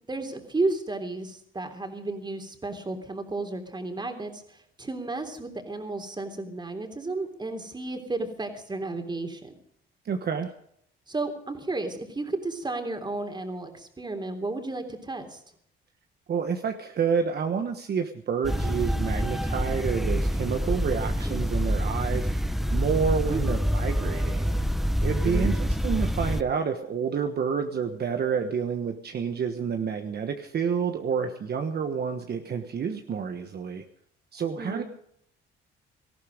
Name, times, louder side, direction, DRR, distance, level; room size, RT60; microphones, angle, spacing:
voice 1, 0.1-9.6 11.1-15.4 23.3-23.5 25.2-25.5 34.6-34.8, right 2 dB, 20° right, 6 dB, 3.4 m, -33 dB
voice 2, 10.0-10.5 16.3-22.4 22.7-24.6 25.0-33.8 34.3-34.8, right 6 dB, 55° right, 6 dB, 1.4 m, -29 dB
sound 1, 18.4-26.4, equal, ahead, 0.9 m, -26 dB
18.5 x 14.0 x 5.2 m, 0.69 s
cardioid pair, 90°, 20 cm